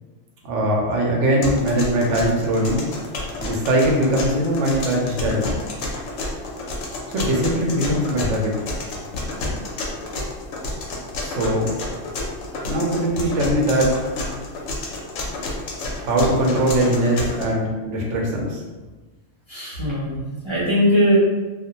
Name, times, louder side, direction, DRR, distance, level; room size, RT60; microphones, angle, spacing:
voice 1, 0.4-2.9 3.4-5.4 7.1-8.5 11.2-11.7 12.6-14.0 16.0-18.6, right 1 dB, 65° right, -1 dB, 0.8 m, -21 dB
sound 1, 1.4-17.4, left 2 dB, 65° left, 0.8 m, -30 dB
voice 2, 19.5-21.2, equal, 40° right, -10 dB, 0.4 m, -20 dB
2.4 x 2.1 x 2.8 m, 1.2 s
omnidirectional pair, 1.5 m